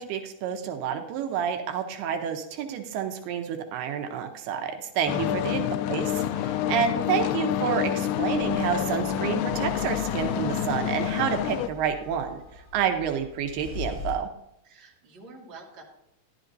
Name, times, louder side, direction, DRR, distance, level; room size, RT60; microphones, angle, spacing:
voice 1, 0.0-14.3, right 8 dB, 85° right, 5 dB, 2.9 m, -29 dB
voice 2, 5.0-5.3 14.6-15.8, right 3 dB, 35° right, -3 dB, 2.4 m, -48 dB
sound 1, 5.1-11.7, left 11 dB, 85° left, 2.5 m, -28 dB
sound 2, 8.3-14.2, left 5 dB, 15° left, 2.7 m, -42 dB
14.0 x 11.0 x 2.6 m, 0.82 s
omnidirectional pair, 4.5 m